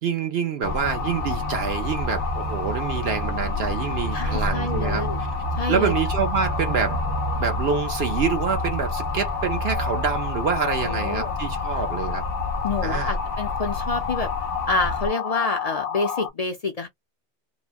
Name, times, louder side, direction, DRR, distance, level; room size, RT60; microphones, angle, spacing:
voice 1, 0.0-5.0 5.7-7.0 7.4-12.2 12.8-13.2, right 6 dB, 65° right, 0.9 m, -26 dB
sound 1, 0.6-16.3, left 7 dB, 75° left, 0.9 m, -31 dB
sound 2, 0.6-15.1, equal, 80° right, 1.4 m, -30 dB
voice 2, 4.1-5.2 5.5-5.9 10.8-11.4 12.6-14.3 14.7-16.9, left 3 dB, 45° left, 0.5 m, -27 dB
3.0 x 2.1 x 2.3 m
omnidirectional pair, 1.2 m